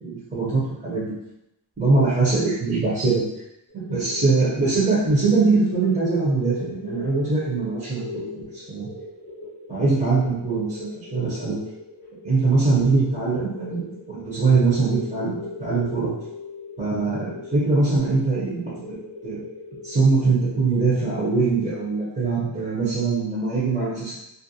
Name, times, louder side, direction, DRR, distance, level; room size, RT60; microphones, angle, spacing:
voice 1, 0.0-1.0 1.8-3.2 3.9-8.9 9.7-11.6 12.2-16.1 16.8-18.9 19.2-19.4 19.8-24.1, right 3 dB, 20° right, -9 dB, 0.6 m, -22 dB
sound 1, 3.7-22.0, left 3 dB, 25° left, 0.9 m, -39 dB
2.4 x 2.1 x 2.6 m, 0.85 s
wide cardioid pair, 170°, 44 cm